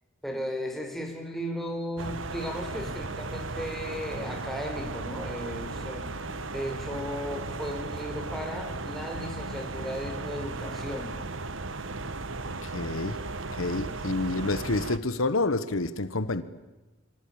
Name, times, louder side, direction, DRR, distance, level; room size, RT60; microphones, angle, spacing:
voice 1, 0.2-6.0 6.5-11.1 13.9-14.0, equal, ahead, 4.5 m, -35 dB
sound 1, 2.0-15.0, right 3 dB, 70° right, 1.4 m, -36 dB
voice 2, 12.6-13.2 13.5-16.4, left 2 dB, 80° left, 1.2 m, -28 dB
27.5 x 24.0 x 8.8 m
head